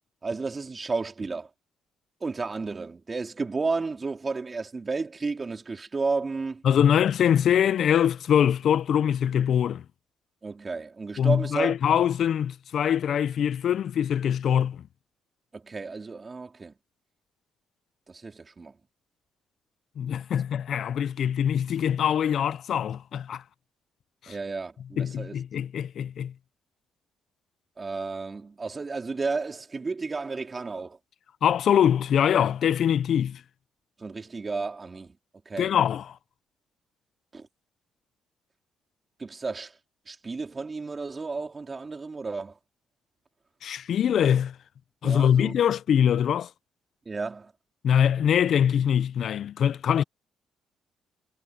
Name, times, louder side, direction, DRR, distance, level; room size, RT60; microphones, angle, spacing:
voice 1, 0.2-1.5 2.2-6.6 10.4-11.8 15.5-16.7 18.1-18.8 24.3-25.4 27.8-31.0 34.0-35.2 35.5-35.7 37.3-37.5 39.2-39.8 40.1-42.6 45.0-45.5 47.1-47.5, right 4 dB, 30° right, 3.5 m, -32 dB
voice 2, 6.7-9.8 11.2-14.8 20.0-23.4 24.2-24.3 25.0-26.3 31.4-33.4 35.6-36.0 43.6-44.5 45.0-46.5 47.8-50.0, left 9 dB, 65° left, 0.5 m, -23 dB
cardioid pair, 90°, 0 cm